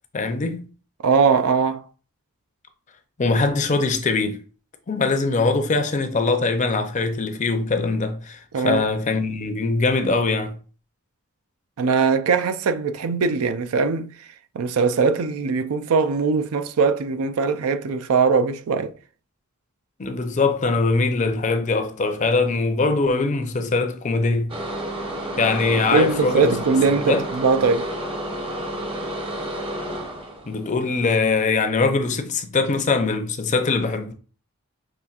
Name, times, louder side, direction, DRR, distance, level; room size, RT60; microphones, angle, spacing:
voice 1, 0.1-0.7 3.2-4.4 4.9-10.6 20.0-24.5 25.4-26.6 27.1-27.2 30.5-34.1, left 3 dB, 35° left, 0.5 m, -22 dB
voice 2, 1.0-1.8 8.5-8.8 11.8-14.1 14.5-18.9 25.9-27.9, right 5 dB, 80° right, 0.4 m, -21 dB
sound 1, 24.5-30.7, right 1 dB, 25° right, 0.7 m, -30 dB
5.6 x 3.3 x 2.4 m
head